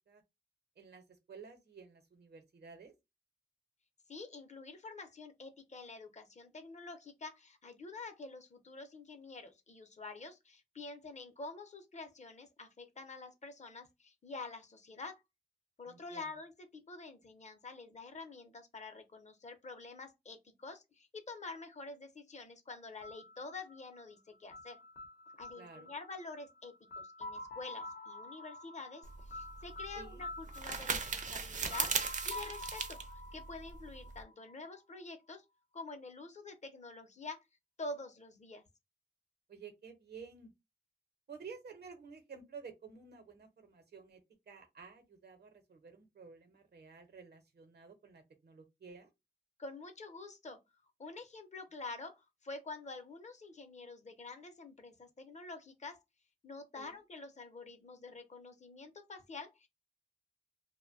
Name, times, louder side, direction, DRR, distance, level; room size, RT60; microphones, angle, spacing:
voice 1, 0.8-2.9 15.9-16.2 25.6-25.9 30.0-30.2 39.5-40.5 41.3-44.2 44.5-49.1 56.8-57.0, right 5 dB, 85° right, 0.7 m, -52 dB
voice 2, 4.1-15.2 15.8-24.8 25.3-33.0 33.3-35.4 35.7-37.4 37.8-38.6 49.6-50.6 51.0-56.0 56.4-59.7, left 3 dB, 45° left, 0.6 m, -47 dB
sound 1, 23.0-34.8, left 2 dB, 90° left, 0.7 m, -48 dB
sound 2, 29.0-34.2, right 5 dB, 50° right, 0.4 m, -38 dB
2.6 x 2.1 x 2.5 m
wide cardioid pair, 95°, 17 cm